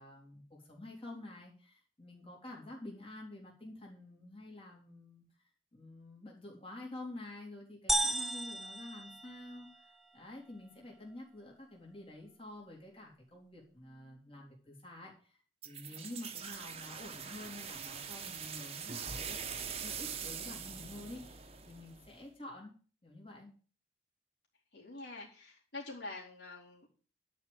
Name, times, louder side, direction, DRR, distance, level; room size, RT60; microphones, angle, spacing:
voice 1, 0.0-5.2 5.7-15.4 15.6-22.7 23.0-23.5, left 1 dB, 35° left, -3 dB, 3.8 m, -49 dB
sound 1, 7.9-9.8, right 1 dB, ahead, 0.8 m, -34 dB
sound 2, 15.6-22.2, right 7 dB, 35° right, 1.1 m, -43 dB
voice 2, 24.7-26.9, left 2 dB, 75° left, -3 dB, 4.1 m, -46 dB
11.5 x 5.3 x 8.1 m, 0.40 s
head